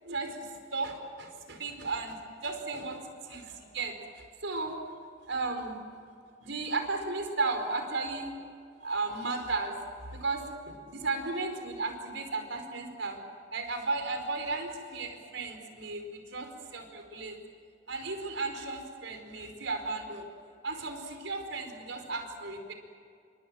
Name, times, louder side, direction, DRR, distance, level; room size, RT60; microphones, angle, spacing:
voice 1, 0.0-4.8 5.3-5.8 6.4-8.3 8.8-9.8 10.1-13.2 13.5-17.4 17.9-20.3 20.6-22.7, right 3 dB, 70° right, 5 dB, 4.9 m, -35 dB
29.0 x 25.0 x 7.8 m, 2.3 s
head